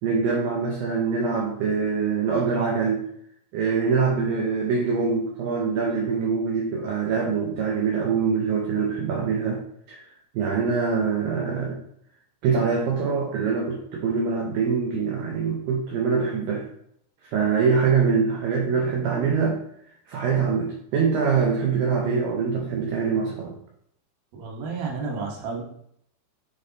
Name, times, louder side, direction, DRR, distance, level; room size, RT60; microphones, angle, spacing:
voice 1, 0.0-3.0 3.5-9.6 9.9-10.0 10.3-11.8 12.4-16.7 17.3-19.6 20.1-23.6, right 5 dB, 90° right, 0 dB, 2.0 m, -24 dB
voice 2, 24.3-25.6, right 4 dB, 65° right, -1 dB, 2.6 m, -31 dB
9.6 x 3.5 x 4.0 m, 0.71 s
omnidirectional pair, 5.3 m